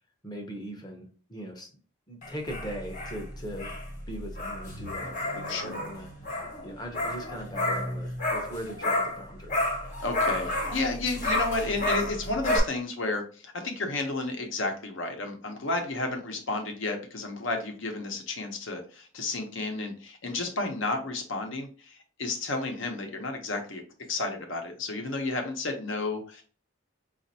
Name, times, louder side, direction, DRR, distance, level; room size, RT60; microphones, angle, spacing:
voice 1, 0.2-1.8 2.1-3.7 4.1-6.1 6.6-9.5, equal, 20° left, 3 dB, 0.7 m, -40 dB
sound 1, 2.2-9.2 9.5-12.6, left 1 dB, 40° left, 1.1 m, -31 dB
voice 2, 10.0-23.8 24.1-26.4, left 3 dB, 65° left, 4 dB, 0.8 m, -32 dB
5.0 x 2.5 x 2.7 m, 0.40 s
head